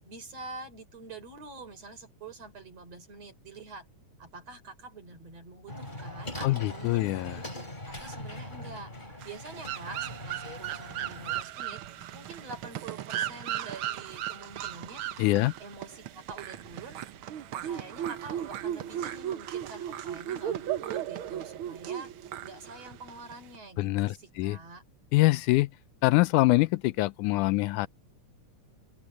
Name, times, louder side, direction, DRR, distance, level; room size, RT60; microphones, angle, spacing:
voice 1, 0.0-3.9 4.2-7.5 7.9-8.9 9.2-11.8 12.1-15.0 15.6-17.0 17.6-22.1 22.4-24.8, right 3 dB, 55° right, 5.5 m, -46 dB
sound 1, 5.7-11.4, left 1 dB, 15° left, 5.0 m, -41 dB
voice 2, 6.4-7.4 15.2-15.5 23.8-24.6 25.1-25.7 26.0-27.9, left 19 dB, 80° left, 2.0 m, -24 dB
sound 2, 9.2-23.6, right 11 dB, 80° right, 1.2 m, -36 dB
open air
omnidirectional pair, 3.6 m